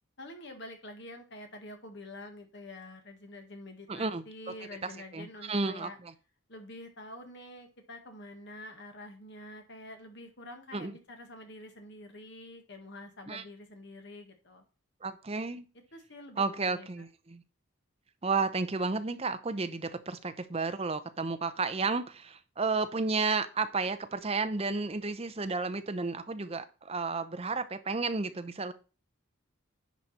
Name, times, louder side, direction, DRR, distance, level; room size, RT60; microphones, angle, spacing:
voice 1, 0.2-6.0 6.5-14.6 15.9-16.9, left 1 dB, 55° left, 1.7 m, -47 dB
voice 2, 3.9-4.2 5.1-6.1 10.7-11.0 13.3-13.4 15.0-15.6 16.4-17.4 18.2-28.7, right 4 dB, 30° right, 0.6 m, -32 dB
10.5 x 5.1 x 4.2 m
head